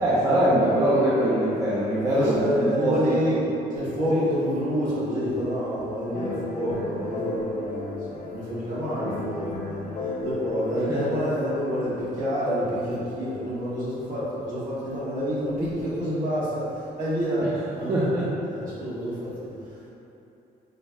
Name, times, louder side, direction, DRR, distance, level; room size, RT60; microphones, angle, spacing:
voice 1, 0.0-3.3 4.1-4.2 10.9-11.1 17.9-18.3, right 1 dB, 20° right, -8 dB, 0.4 m, -23 dB
voice 2, 2.1-3.4 3.7-18.0 18.5-19.9, equal, 55° right, -10 dB, 1.2 m, -28 dB
sound 1, 6.1-11.8, left 2 dB, 50° left, 0.6 m, -34 dB
3.8 x 2.0 x 3.4 m, 2.8 s
cardioid pair, 150°, 17 cm